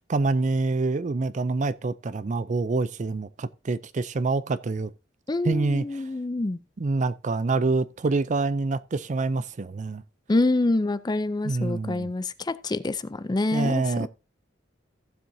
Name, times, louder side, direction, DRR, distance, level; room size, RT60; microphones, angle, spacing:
voice 1, 0.1-4.9 5.4-6.0 6.8-10.0 11.4-12.1 13.5-14.1, right 3 dB, 40° right, 0.4 m, -26 dB
voice 2, 5.3-6.6 10.3-14.1, left 2 dB, 20° left, 0.4 m, -26 dB
15.0 x 7.3 x 2.7 m
head